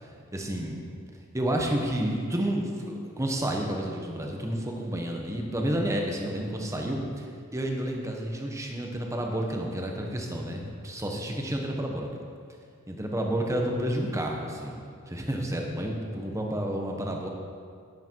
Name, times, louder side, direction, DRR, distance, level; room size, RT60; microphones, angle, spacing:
voice 1, 0.3-0.8 1.3-12.1 12.9-14.8 15.1-17.3, right 1 dB, 15° right, 1 dB, 1.3 m, -30 dB
12.0 x 10.0 x 4.8 m, 2.2 s
head